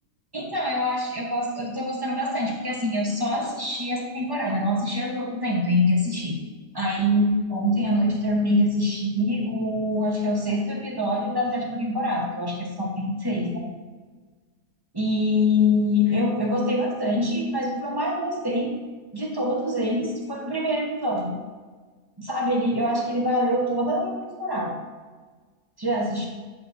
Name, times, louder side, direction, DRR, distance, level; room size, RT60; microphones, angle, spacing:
voice 1, 0.3-6.4 6.7-13.7 14.9-18.7 19.1-21.4 22.2-24.7 25.8-26.2, left 1 dB, 20° right, -1 dB, 0.7 m, -25 dB
7.8 x 7.4 x 2.6 m, 1.4 s
omnidirectional pair, 1.8 m